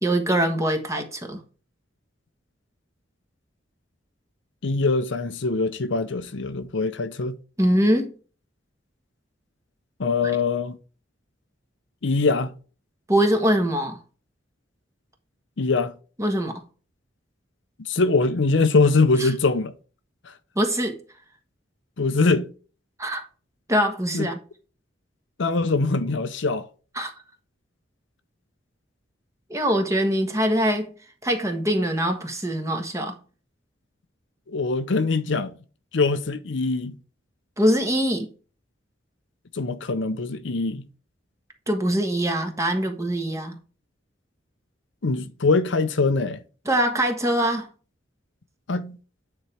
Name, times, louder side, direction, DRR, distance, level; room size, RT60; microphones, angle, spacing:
voice 1, 0.0-1.4 7.6-8.1 10.2-10.3 13.1-14.0 16.2-16.6 19.2-19.3 20.5-21.0 23.0-23.3 23.7-24.4 26.9-27.1 29.5-30.9 31.2-33.2 37.6-38.3 41.7-43.5 46.6-47.7, equal, 15° right, 1.3 m, -23 dB
voice 2, 4.6-7.4 10.0-10.7 12.0-12.5 15.6-15.9 17.8-19.7 22.0-22.5 24.1-24.3 25.4-26.6 34.5-35.5 35.9-37.0 39.5-40.9 45.0-46.4 48.7-49.0, left 3 dB, 70° left, 0.7 m, -23 dB
9.1 x 4.4 x 3.3 m
head